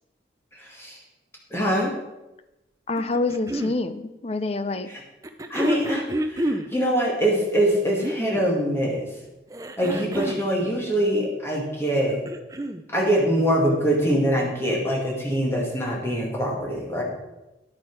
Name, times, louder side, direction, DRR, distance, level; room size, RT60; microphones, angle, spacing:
voice 1, 0.5-1.0 1.5-1.9 4.9-5.0 5.5-9.1 9.8-12.2 12.9-17.0, equal, 15° left, -3 dB, 2.1 m, -24 dB
voice 2, 2.9-4.9, left 2 dB, 35° left, 11 dB, 0.5 m, -26 dB
sound 1, 3.0-3.8 5.2-6.7 7.7-8.5 9.5-10.5 11.9-12.8 14.0-14.1, right 1 dB, 20° right, 0.5 m, -29 dB
10.5 x 8.8 x 4.6 m, 0.99 s
head